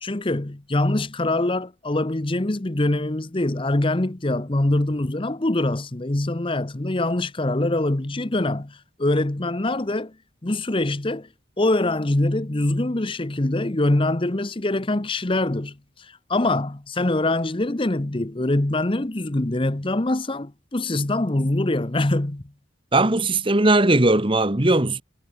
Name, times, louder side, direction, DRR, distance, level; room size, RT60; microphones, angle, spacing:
voice 1, 0.0-10.1 10.4-11.3 11.6-22.4, left 2 dB, 25° left, 0.9 m, -24 dB
voice 2, 22.9-25.0, right 2 dB, 25° right, 1.4 m, -18 dB
head